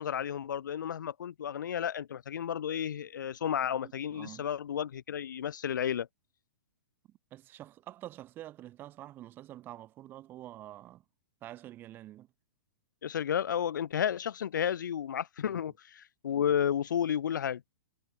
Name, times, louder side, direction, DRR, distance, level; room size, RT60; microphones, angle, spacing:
voice 1, 0.0-6.1 13.0-17.7, left 9 dB, 90° left, 0.9 m, -32 dB
voice 2, 3.8-4.5 7.1-11.0 11.4-12.3 15.5-15.6, right 14 dB, 20° right, 1.1 m, -47 dB
hypercardioid pair, 160°, 10 cm